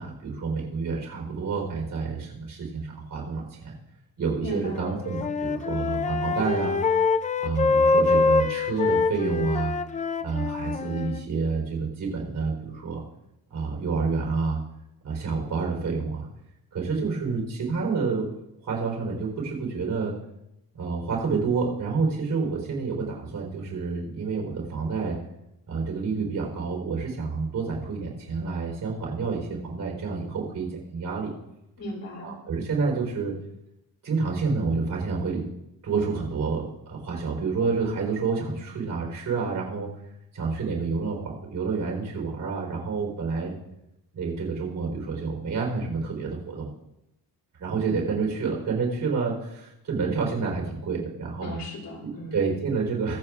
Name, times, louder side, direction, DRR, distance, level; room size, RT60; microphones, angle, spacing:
voice 1, 0.0-3.7 4.2-6.8 7.4-9.7 10.2-13.0 13.5-14.6 15.0-16.3 16.7-18.3 18.6-20.1 20.8-25.2 25.7-31.3 32.2-33.3 34.0-35.4 35.8-39.9 40.3-43.6 44.1-46.7 47.6-51.6 52.3-53.2, right 4 dB, 65° right, -2 dB, 3.9 m, -28 dB
voice 2, 4.4-4.9 31.8-32.3 51.4-52.4, equal, 70° left, -2 dB, 2.9 m, -35 dB
Wind instrument woodwind instrument, 4.8-11.2, left 4 dB, 20° left, 0.3 m, -24 dB
22.5 x 7.6 x 2.4 m, 0.85 s
wide cardioid pair, 175°, 35 cm